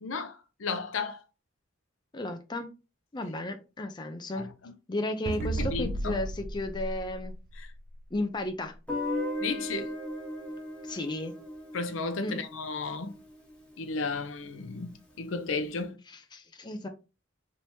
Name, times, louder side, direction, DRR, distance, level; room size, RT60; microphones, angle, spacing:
voice 1, 0.0-1.2 4.3-4.5 5.4-6.2 7.6-7.7 9.4-9.9 11.7-13.1 13.8-16.0, left 4 dB, 90° left, 0.6 m, -34 dB
voice 2, 2.1-2.7 3.1-4.5 4.9-7.3 8.1-8.7 10.8-11.3 12.2-12.4 16.1-16.9, left 1 dB, 25° left, 0.5 m, -34 dB
sound 1, 5.3-8.0, right 2 dB, 50° right, 0.3 m, -34 dB
Guitar, 8.9-13.7, left 1 dB, 5° left, 1.2 m, -37 dB
3.4 x 3.0 x 2.7 m
head